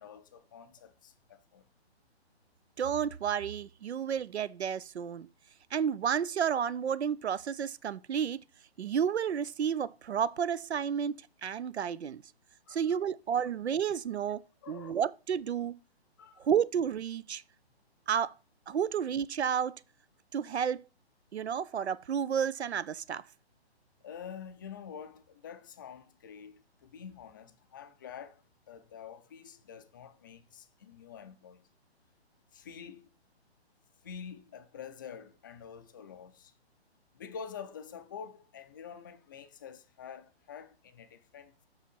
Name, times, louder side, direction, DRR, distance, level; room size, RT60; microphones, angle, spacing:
voice 1, 0.0-1.6 12.7-13.0 14.6-15.0 16.2-16.5 24.0-28.4 28.7-31.7 32.5-33.1 34.0-36.5 37.1-41.7, left 7 dB, 20° left, 0.5 m, -47 dB
voice 2, 2.8-5.3 5.7-8.4 8.8-12.2 12.7-14.4 14.7-15.8 16.4-17.4 18.1-18.3 18.7-19.8 20.3-20.8 21.3-23.2, right 8 dB, 80° right, 0.5 m, -31 dB
6.1 x 5.6 x 5.3 m
figure-of-eight pair, 145°, 32 cm